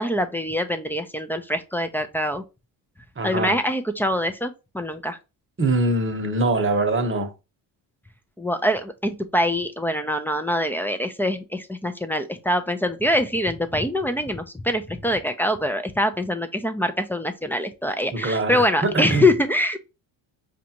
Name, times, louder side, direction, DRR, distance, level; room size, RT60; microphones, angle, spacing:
voice 1, 0.0-2.4 3.2-5.2 8.4-19.8, left 1 dB, 5° left, 0.6 m, -24 dB
voice 2, 3.2-3.6 5.6-7.3 18.1-19.3, right 2 dB, 25° right, 1.1 m, -23 dB
5.0 x 2.6 x 2.9 m
supercardioid pair, 65°, 50 cm